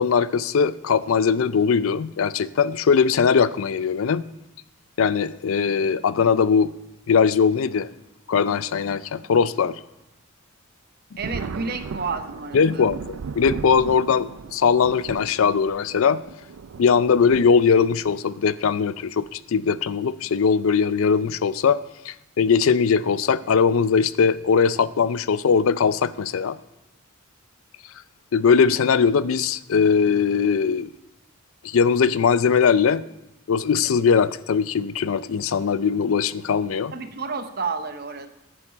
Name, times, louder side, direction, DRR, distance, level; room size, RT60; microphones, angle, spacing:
voice 1, 0.0-4.2 5.0-6.7 7.1-7.9 8.3-9.8 12.5-16.2 16.8-26.6 28.3-30.9 31.6-33.0 33.5-36.9, left 6 dB, 80° left, 16 dB, 0.4 m, -20 dB
voice 2, 11.2-12.9 36.9-38.3, right 4 dB, 45° right, 9 dB, 0.8 m, -30 dB
Thunder, 11.2-18.2 19.2-19.3 20.8-21.1 21.4-21.5 23.5-23.7 24.4-24.7, right 5 dB, 80° right, 0.4 m, -37 dB
11.0 x 9.0 x 5.0 m, 0.91 s
head